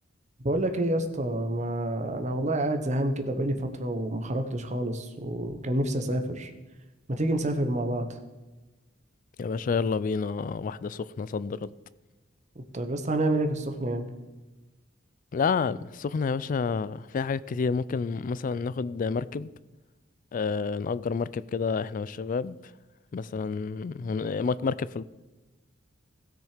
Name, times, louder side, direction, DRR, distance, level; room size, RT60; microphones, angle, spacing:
voice 1, 0.4-6.5 7.1-8.1 12.7-14.1, right 1 dB, 40° right, 1.1 m, -28 dB
voice 2, 9.4-11.7 15.3-19.5 20.3-22.6 23.1-25.0, left 5 dB, 45° left, 0.3 m, -29 dB
16.5 x 6.4 x 5.0 m
head